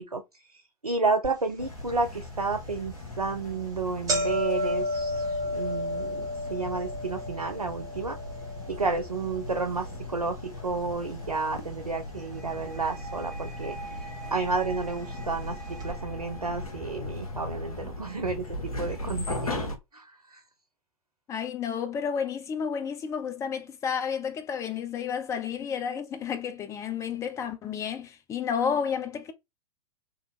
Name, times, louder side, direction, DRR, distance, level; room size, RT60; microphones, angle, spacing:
voice 1, 0.0-8.2 8.7-20.4, right 4 dB, 90° right, 0.5 m, -31 dB
sound 1, 1.2-1.3 1.9-2.0 2.8-3.0 3.3-3.4 3.7-11.9 12.2-12.9 13.7-13.8 14.8-14.9 15.1-15.2 15.8-15.9, left 1 dB, 20° right, 1.3 m, -33 dB
sound 2, 1.6-19.8, left 2 dB, 75° left, 0.9 m, -38 dB
sound 3, 12.1-17.1, right 3 dB, ahead, 1.6 m, -45 dB
voice 2, 21.3-29.3, left 7 dB, 15° left, 0.5 m, -31 dB
2.9 x 2.5 x 3.2 m
figure-of-eight pair, 100°, 19 cm